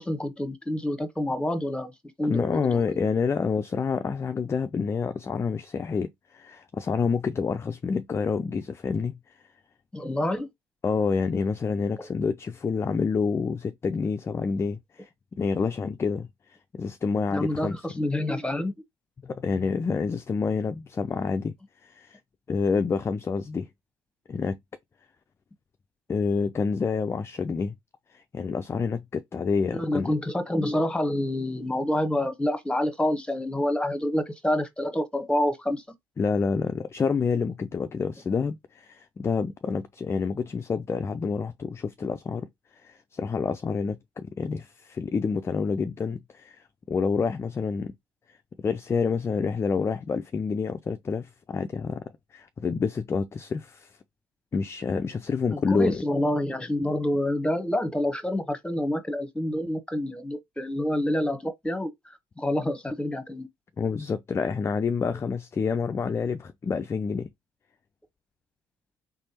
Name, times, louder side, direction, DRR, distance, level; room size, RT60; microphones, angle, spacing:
voice 1, 0.0-1.9 2.2-3.0 9.9-10.5 12.0-12.1 17.3-18.7 29.7-35.8 55.5-63.5, left 1 dB, 10° left, 1.0 m, -28 dB
voice 2, 2.2-9.2 10.8-16.3 16.7-17.8 19.2-21.5 21.8-22.2 22.5-23.7 24.3-24.6 26.1-27.7 28.1-30.1 36.2-47.9 48.3-52.0 52.3-54.0 54.5-56.0 63.8-67.3, left 5 dB, 25° left, 0.4 m, -28 dB
3.6 x 3.4 x 2.8 m
supercardioid pair, 70°, 10 cm